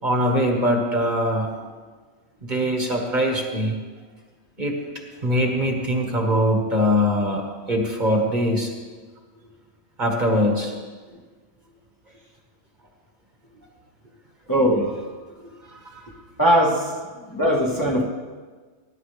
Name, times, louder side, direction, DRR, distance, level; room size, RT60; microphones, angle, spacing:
voice 1, 0.0-1.5 2.4-3.8 4.6-4.8 5.2-8.7 10.0-10.7 15.4-16.1, equal, 40° right, 1 dB, 1.8 m, -22 dB
voice 2, 14.5-15.0 16.4-16.9 17.3-18.0, equal, 15° left, -3 dB, 1.4 m, -20 dB
19.0 x 10.5 x 3.4 m, 1.4 s
omnidirectional pair, 1.3 m